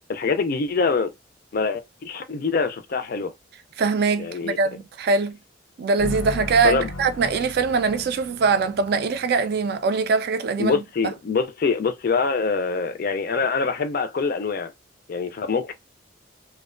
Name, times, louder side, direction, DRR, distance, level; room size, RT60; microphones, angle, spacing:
voice 1, 0.1-1.1 1.5-3.3 4.2-4.6 6.6-6.9 10.6-14.7 15.1-15.7, left 4 dB, 50° left, 0.4 m, -24 dB
voice 2, 3.8-5.4 5.8-11.1, right 4 dB, 55° right, 0.3 m, -22 dB
sound 1, 6.0-10.1, left 1 dB, 85° left, 0.7 m, -36 dB
2.5 x 2.1 x 2.4 m
head